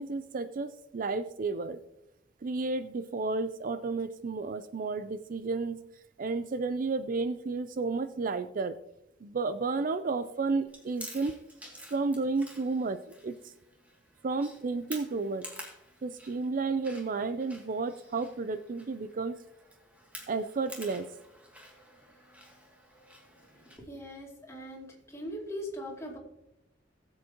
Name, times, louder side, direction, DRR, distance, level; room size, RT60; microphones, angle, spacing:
voice 1, 0.0-1.8 2.4-5.8 6.2-8.7 9.2-11.3 11.9-13.4 14.2-15.5 16.0-19.3 20.3-21.1, right 3 dB, 45° right, 12 dB, 0.5 m, -32 dB
Chewing mastication, 10.7-23.8, equal, 10° right, 2.3 m, -50 dB
voice 2, 23.8-26.2, equal, 15° left, -2 dB, 2.6 m, -40 dB
18.5 x 7.9 x 2.9 m, 0.84 s
head